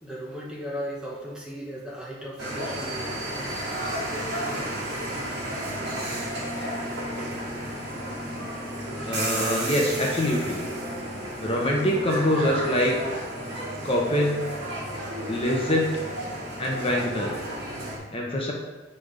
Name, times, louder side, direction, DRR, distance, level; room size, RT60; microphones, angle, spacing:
voice 1, 0.0-3.9 4.5-4.7, equal, 5° right, -4 dB, 0.9 m, -37 dB
sound 1, 2.4-18.0, right 1 dB, 60° right, 2.2 m, -32 dB
voice 2, 9.0-10.6 11.4-12.9 13.8-14.4 15.3-15.9 16.6-17.3 18.1-18.5, left 1 dB, 30° left, -1 dB, 0.9 m, -24 dB
7.2 x 4.3 x 5.0 m, 1.2 s
head